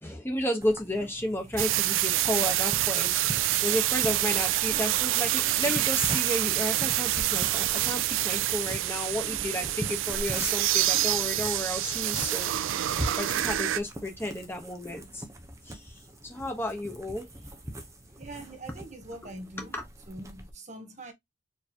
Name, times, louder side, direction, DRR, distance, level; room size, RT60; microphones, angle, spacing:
voice 1, 0.0-12.9 13.2-15.2 15.6-17.5 19.7-19.8, left 1 dB, 10° left, 1.1 m, -33 dB
sound 1, 0.6-20.5, right 1 dB, 15° right, 0.7 m, -42 dB
sound 2, 1.6-13.8, right 14 dB, 80° right, 0.3 m, -27 dB
voice 2, 18.2-19.8 20.1-21.1, right 2 dB, 35° right, 1.0 m, -43 dB
4.4 x 3.1 x 2.8 m
head